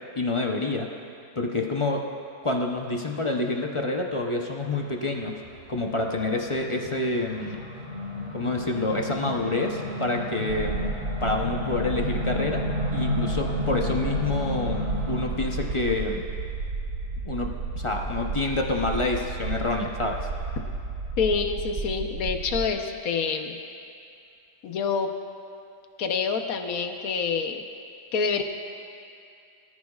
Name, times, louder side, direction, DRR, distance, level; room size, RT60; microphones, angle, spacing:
voice 1, 0.1-0.9 1.4-2.0 2.4-5.3 5.7-7.6 8.3-10.8 11.2-12.6 12.9-16.2 17.2-17.5 17.7-20.3, left 2 dB, 40° left, 1 dB, 0.4 m, -27 dB
sound 1, 5.2-15.7, left 1 dB, 30° right, 3.3 m, -32 dB
sound 2, 10.5-22.7, right 3 dB, 55° right, 1.4 m, -32 dB
voice 2, 21.2-23.6 24.6-25.1 26.0-27.6 28.1-28.4, left 5 dB, 60° left, 5 dB, 1.3 m, -27 dB
23.0 x 14.0 x 2.4 m, 2.5 s
omnidirectional pair, 1.8 m